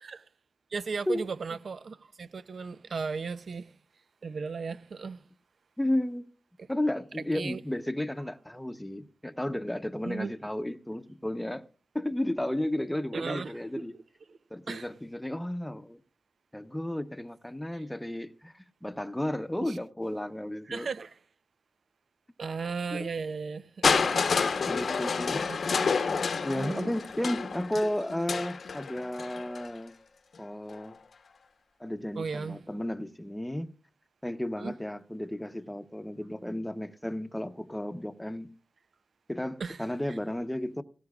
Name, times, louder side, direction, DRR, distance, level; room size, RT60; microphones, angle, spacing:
voice 1, 0.7-3.7 4.2-5.2 7.3-7.6 10.0-10.3 13.1-13.6 14.3-14.4 14.7-14.9 19.6-19.8 20.7-21.1 22.4-24.0 25.5-25.9 26.5-26.9 32.1-32.6 34.6-34.7 39.6-39.8, right 5 dB, 75° right, 0.6 m, -36 dB
voice 2, 5.8-6.3 6.7-11.6 11.9-13.9 14.5-16.0 16.5-20.9 22.9-23.1 24.7-25.4 26.4-29.9 30.4-31.0 31.8-33.7 34.2-38.5 39.3-40.8, left 1 dB, 10° left, 0.8 m, -33 dB
Crushing, 23.8-29.7 30.7-30.8, left 5 dB, 80° left, 1.0 m, -29 dB
17.5 x 15.5 x 2.4 m
wide cardioid pair, 100°, 0 cm